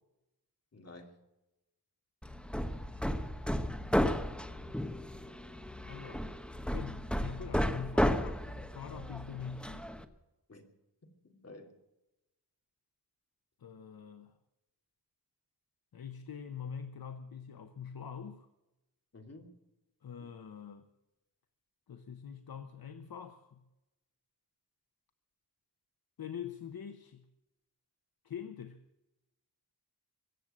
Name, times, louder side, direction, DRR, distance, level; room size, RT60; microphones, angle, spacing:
voice 1, 0.7-1.2 10.5-10.6 11.0-11.7 19.1-19.5, left 2 dB, 40° left, 3.0 m, -52 dB
Hammer, 2.2-10.0, equal, ahead, 1.0 m, -34 dB
voice 2, 5.9-9.9 13.6-14.3 15.9-18.5 20.0-20.9 21.9-23.6 26.2-27.2 28.2-28.8, left 7 dB, 65° left, 1.0 m, -44 dB
24.0 x 8.1 x 7.4 m
wide cardioid pair, 145°, 40 cm